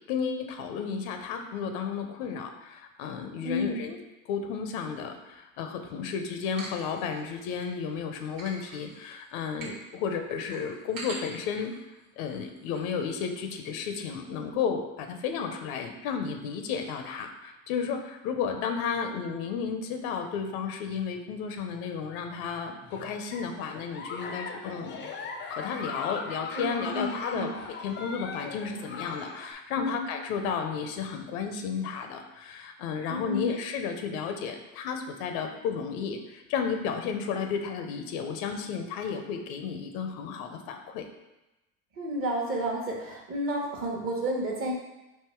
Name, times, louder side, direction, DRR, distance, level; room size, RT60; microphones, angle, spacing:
voice 1, 0.1-4.0 4.3-11.7 12.2-25.0 25.5-41.1, left 6 dB, 80° left, 6 dB, 0.7 m, -33 dB
voice 2, 3.4-3.9 26.6-27.6 29.8-30.1 33.1-33.5 42.0-44.7, equal, 35° right, -1 dB, 1.0 m, -31 dB
sound 1, 6.4-7.7 8.1-12.9 13.2-13.3 13.5-14.1, right 2 dB, 55° right, 1.3 m, -45 dB
Giggle, 22.8-29.5, left 4 dB, 30° left, 0.4 m, -39 dB
3.6 x 2.7 x 4.4 m, 1.0 s
supercardioid pair, 110°, 41 cm